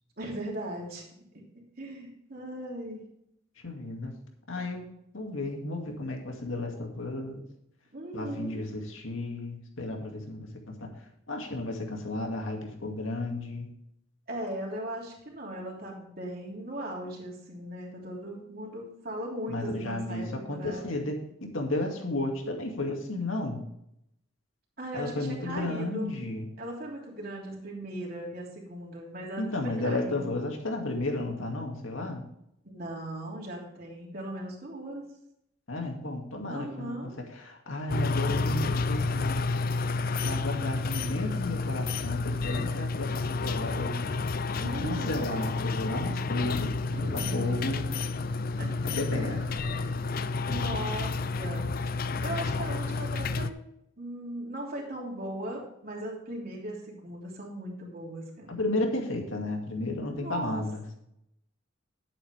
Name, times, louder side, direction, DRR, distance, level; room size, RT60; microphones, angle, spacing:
voice 1, 0.2-1.0 1.3-3.0 7.9-8.6 14.3-21.0 24.8-26.2 26.6-30.4 32.6-35.0 36.5-37.1 44.6-45.2 46.9-47.7 48.6-48.7 49.2-49.4 50.5-51.1 51.4-51.7 52.2-53.5 54.0-58.6 60.2-60.6, right 1 dB, 50° right, -2 dB, 3.2 m, -38 dB
voice 2, 3.6-4.1 4.5-4.9 5.1-7.4 8.1-10.5 11.3-13.7 19.5-23.6 24.9-26.5 29.4-32.2 35.7-36.9 37.4-39.4 40.2-43.9 44.6-47.0 47.3-47.8 48.8-49.4 58.5-60.8, left 2 dB, 85° left, 2 dB, 2.3 m, -33 dB
sound 1, 37.9-53.5, left 3 dB, 45° left, 0.5 m, -30 dB
11.0 x 8.6 x 3.4 m, 0.77 s
head